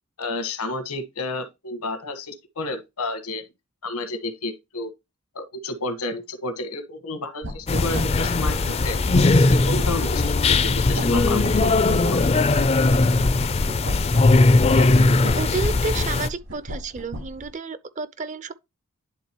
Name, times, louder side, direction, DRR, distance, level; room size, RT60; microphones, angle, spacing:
voice 1, 0.2-3.4 3.8-4.9 5.3-8.6 8.8-9.0 9.5-11.7 12.0-12.3, left 2 dB, 85° left, 1.3 m, -31 dB
sound 1, 7.4-17.5, equal, 80° right, 4.1 m, -35 dB
sound 2, 7.7-16.3, left 3 dB, 25° left, 0.4 m, -19 dB
voice 2, 15.4-18.5, right 5 dB, 35° right, 0.5 m, -31 dB
10.5 x 3.7 x 3.0 m
head